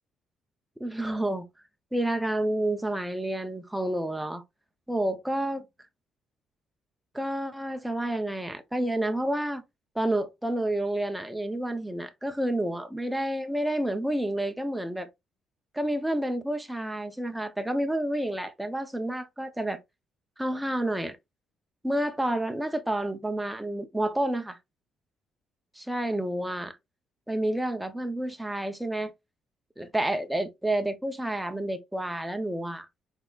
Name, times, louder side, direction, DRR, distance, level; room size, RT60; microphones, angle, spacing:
voice 1, 0.8-1.4 1.9-4.4 4.9-5.6 7.1-9.6 9.9-15.1 15.7-19.8 20.4-21.2 21.8-24.6 25.8-26.8 27.3-29.1 29.8-32.9, right 1 dB, 5° right, 0.6 m, -29 dB
4.5 x 4.0 x 2.3 m
cardioid pair, 165°, 0 cm